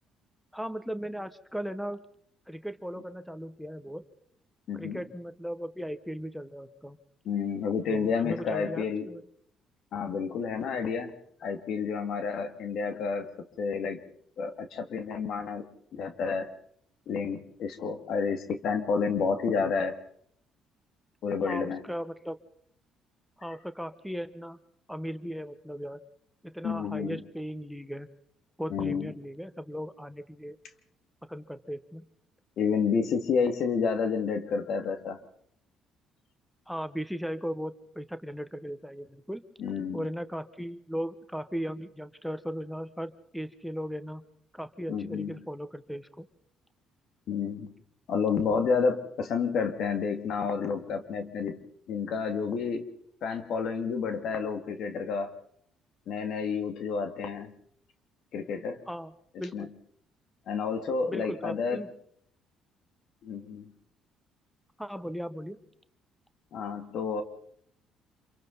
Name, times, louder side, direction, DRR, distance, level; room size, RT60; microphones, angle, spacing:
voice 1, 0.5-2.0 2.5-4.0 4.7-7.0 7.9-9.2 21.4-22.4 23.4-24.6 24.9-26.0 26.4-28.1 28.6-30.6 31.3-32.1 36.7-39.4 39.9-44.2 44.5-46.3 58.9-59.1 59.4-59.7 61.1-61.9 64.8-65.6, equal, ahead, 12 dB, 1.2 m, -37 dB
voice 2, 4.7-5.0 7.2-9.1 9.9-11.1 11.4-13.3 13.6-14.0 14.4-15.7 15.9-16.5 17.1-19.9 21.2-21.8 26.6-27.2 28.7-29.1 32.6-35.2 39.6-40.0 44.9-45.3 47.3-47.7 48.1-51.6 51.9-52.8 53.2-55.3 56.1-57.5 58.3-58.8 59.5-59.7 60.5-61.8 63.2-63.6 66.5-67.2, left 5 dB, 65° left, 7 dB, 2.4 m, -30 dB
27.0 x 23.5 x 4.1 m, 0.66 s
cardioid pair, 80°, 0 cm